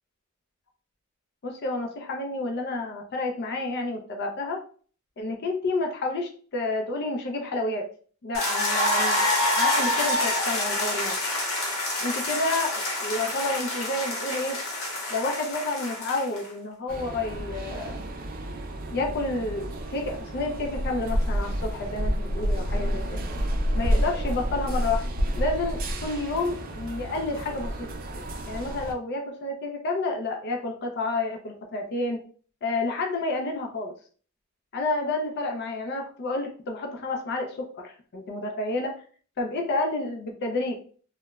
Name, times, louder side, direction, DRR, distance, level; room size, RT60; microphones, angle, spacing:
voice 1, 1.4-4.6 5.2-7.9 8.2-9.3 9.5-11.2 12.0-14.6 15.1-18.0 18.9-23.2 23.7-25.0 25.3-27.9 28.5-32.2 32.6-33.9 34.7-38.9 39.4-40.8, left 2 dB, 50° left, 2 dB, 0.4 m, -30 dB
sound 1, 8.3-16.5, left 1 dB, 80° left, 0.8 m, -27 dB
sound 2, 16.9-28.9, equal, 45° right, 0.4 m, -30 dB
2.9 x 2.1 x 2.2 m, 0.43 s
head